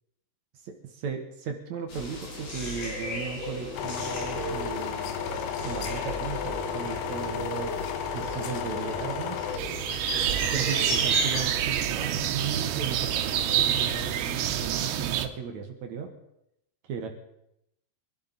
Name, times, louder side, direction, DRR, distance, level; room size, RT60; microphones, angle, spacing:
voice 1, 0.6-5.2 5.6-7.7 8.1-9.4 10.4-16.1 16.9-17.1, right 6 dB, 60° right, 4 dB, 2.0 m, -36 dB
Wren in the evening, 1.9-11.4, left 1 dB, 55° left, 5.1 m, -36 dB
sound 1, 3.7-9.6, left 9 dB, 70° left, 2.8 m, -33 dB
sound 2, 9.6-15.3, right 10 dB, 85° right, 3.2 m, -27 dB
24.0 x 11.5 x 4.0 m, 0.82 s
omnidirectional pair, 4.9 m